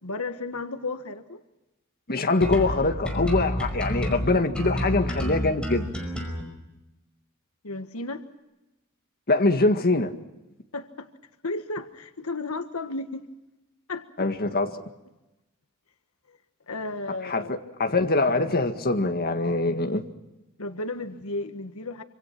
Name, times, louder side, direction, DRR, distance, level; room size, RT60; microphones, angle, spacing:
voice 1, 0.0-1.4 7.6-8.2 10.7-11.1 11.4-13.3 13.9-14.3 16.3-16.4 16.7-17.5 20.6-22.0, left 2 dB, 85° left, 1.6 m, -33 dB
voice 2, 2.1-5.9 9.3-10.2 14.2-14.7 17.2-20.0, left 2 dB, 45° left, 1.9 m, -23 dB
sound 1, 2.4-6.4, equal, 5° left, 5.2 m, -29 dB
26.5 x 26.0 x 6.0 m
head